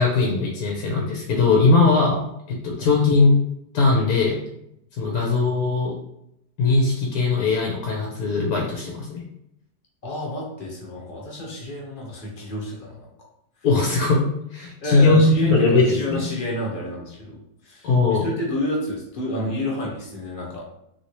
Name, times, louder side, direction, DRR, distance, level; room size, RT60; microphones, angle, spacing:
voice 1, 0.0-2.2 2.5-3.4 3.7-4.4 5.0-5.9 6.6-9.2 13.6-14.2 14.5-16.3 17.8-18.3, left 3 dB, 65° left, -2 dB, 1.0 m, -19 dB
voice 2, 10.0-13.1 14.8-20.7, equal, 50° left, -3 dB, 0.6 m, -30 dB
3.1 x 2.7 x 2.9 m, 0.78 s
omnidirectional pair, 1.8 m